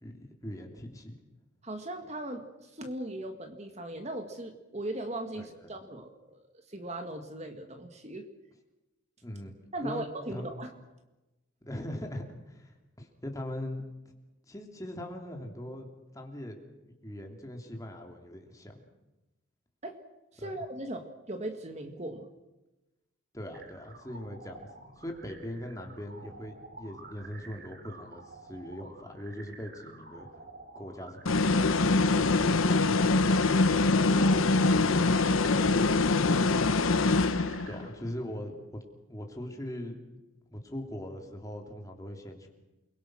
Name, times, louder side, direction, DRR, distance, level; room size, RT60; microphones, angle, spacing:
voice 1, 0.0-1.1 5.3-5.5 9.2-9.5 9.8-10.5 11.7-13.8 14.5-16.6 17.0-18.7 20.4-20.6 23.3-30.3 30.7-33.3 34.8-34.9 37.7-38.8 39.1-40.0 40.5-42.5, left 1 dB, 15° left, 2 dB, 3.1 m, -41 dB
voice 2, 1.6-8.3 9.7-10.7 19.8-20.0 20.3-22.3 34.0-36.4, right 1 dB, 30° right, 6 dB, 1.8 m, -39 dB
sound 1, 23.5-37.9, right 3 dB, 50° right, 3.3 m, -50 dB
sound 2, 31.3-37.9, left 3 dB, 85° left, 1.0 m, -24 dB
29.0 x 22.0 x 6.3 m, 1.0 s
head